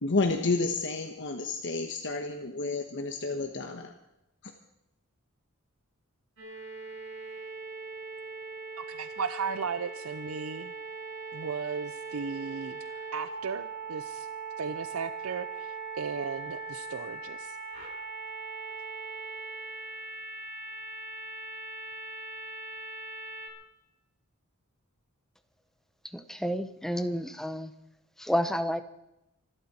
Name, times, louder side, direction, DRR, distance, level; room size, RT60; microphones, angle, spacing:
voice 1, 0.0-3.9, left 3 dB, 60° left, 4 dB, 1.3 m, -30 dB
sound 1, 6.4-23.5, right 3 dB, 65° right, 6.4 m, -40 dB
voice 2, 8.8-10.7 11.3-14.3 14.6-17.6, right 5 dB, 90° right, 12 dB, 0.6 m, -36 dB
voice 3, 26.0-27.7 28.2-28.8, equal, ahead, 9 dB, 0.9 m, -30 dB
25.5 x 12.5 x 4.3 m, 0.88 s
head